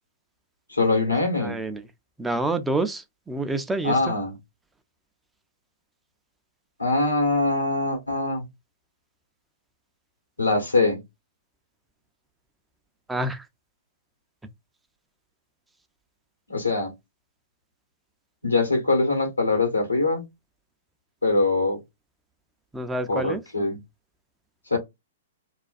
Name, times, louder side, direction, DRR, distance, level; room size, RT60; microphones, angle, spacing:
voice 1, 0.7-1.6 3.8-4.3 6.8-8.5 10.4-11.0 16.5-16.9 18.4-20.3 21.2-21.8 23.1-23.8 24.7-24.8, left 3 dB, 90° left, 1.1 m, -23 dB
voice 2, 1.4-1.8 2.2-4.2 13.1-13.4 22.7-23.4, right 2 dB, 10° right, 0.4 m, -28 dB
2.4 x 2.2 x 2.4 m
figure-of-eight pair, 110°, 0 cm